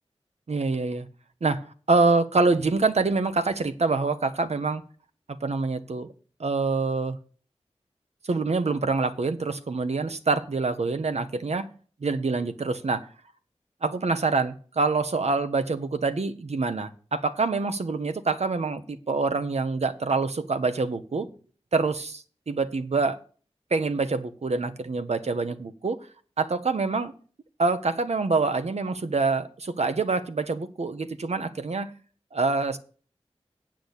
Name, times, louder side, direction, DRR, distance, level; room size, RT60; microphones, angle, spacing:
voice 1, 0.5-1.1 1.4-1.6 1.9-4.8 5.3-6.1 6.4-7.2 8.2-11.7 12.0-13.1 13.8-21.3 21.7-23.2 23.7-26.0 26.4-27.1 27.6-31.9 32.3-32.8, right 3 dB, 70° right, 10 dB, 0.9 m, -26 dB
8.6 x 6.2 x 8.1 m, 0.42 s
wide cardioid pair, 75°, 12 cm